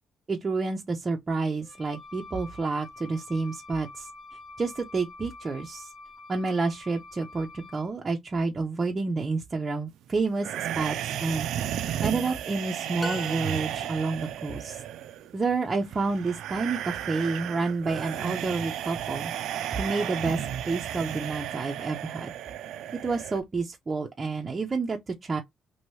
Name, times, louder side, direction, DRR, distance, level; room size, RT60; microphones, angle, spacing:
voice 1, 0.3-4.1 4.6-5.9 6.3-11.5 12.0-14.8 15.3-19.3 19.7-22.3 23.0-25.4, right 3 dB, 30° right, 0.6 m, -29 dB
Wind instrument woodwind instrument, 1.6-7.9, left 3 dB, 80° left, 1.1 m, -47 dB
sound 1, 10.4-23.4, right 10 dB, 90° right, 0.4 m, -34 dB
sound 2, 13.0-14.1, left 2 dB, 15° left, 0.7 m, -39 dB
2.9 x 2.7 x 3.0 m
cardioid pair, 105°, 0 cm